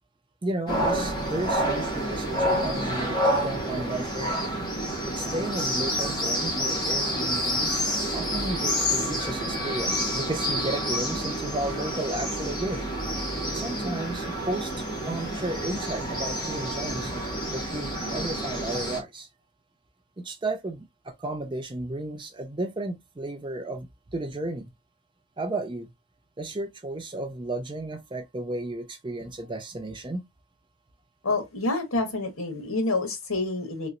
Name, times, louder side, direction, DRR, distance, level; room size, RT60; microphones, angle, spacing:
voice 1, 0.4-4.4 5.0-7.9 8.1-12.8 13.4-17.3 17.5-19.3 20.2-24.7 25.4-25.9 26.4-30.2, right 2 dB, 20° right, 0.5 m, -33 dB
sound 1, 0.7-19.0, equal, 20° left, 1.1 m, -28 dB
voice 2, 31.2-33.9, left 2 dB, 75° left, 1.2 m, -28 dB
3.1 x 2.9 x 2.5 m
head